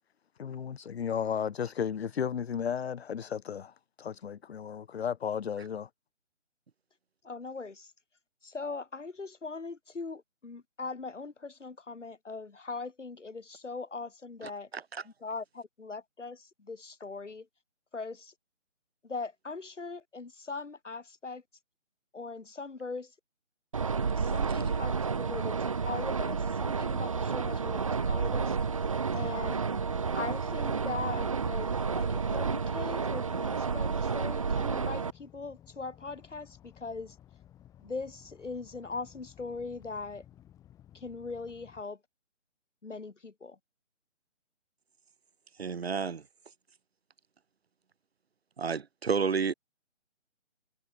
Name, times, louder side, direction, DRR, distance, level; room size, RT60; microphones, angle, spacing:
voice 1, 0.4-5.9, left 8 dB, 60° left, 0.5 m, -34 dB
voice 2, 7.2-7.9 8.4-14.7 15.0-17.5 17.9-18.3 19.0-21.4 22.1-23.1 24.1-28.6 29.1-29.6 30.1-37.2 37.8-40.2 40.9-42.0 42.8-43.6, left 4 dB, 75° left, 3.3 m, -40 dB
sound 1, 23.7-35.1, right 5 dB, 30° right, 0.6 m, -30 dB
sound 2, 25.9-41.8, left 11 dB, 10° left, 4.6 m, -57 dB
voice 3, 45.6-46.2 48.6-49.5, right 5 dB, 55° right, 1.5 m, -30 dB
figure-of-eight pair, 150°, 37 cm